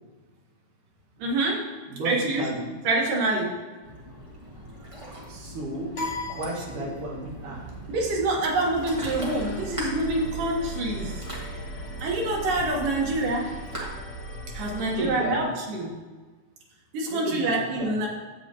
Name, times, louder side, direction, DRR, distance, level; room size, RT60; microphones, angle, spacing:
voice 1, 1.2-1.7 2.0-2.5 2.8-3.5 6.8-6.9 7.9-11.2 12.0-13.5 14.5-15.9 16.9-18.1, right 2 dB, 85° right, -2 dB, 3.1 m, -26 dB
voice 2, 1.9-2.7 5.3-5.9 6.3-7.6 14.8-15.5 17.1-18.0, right 2 dB, 70° right, -5 dB, 3.3 m, -33 dB
Ocean, 3.8-13.9, right 1 dB, 15° right, 1.0 m, -41 dB
sound 1, 5.9-7.4, left 3 dB, 40° left, 2.1 m, -35 dB
sound 2, 8.9-15.1, right 1 dB, 55° left, 1.5 m, -38 dB
10.0 x 7.9 x 3.0 m, 1.3 s
omnidirectional pair, 3.7 m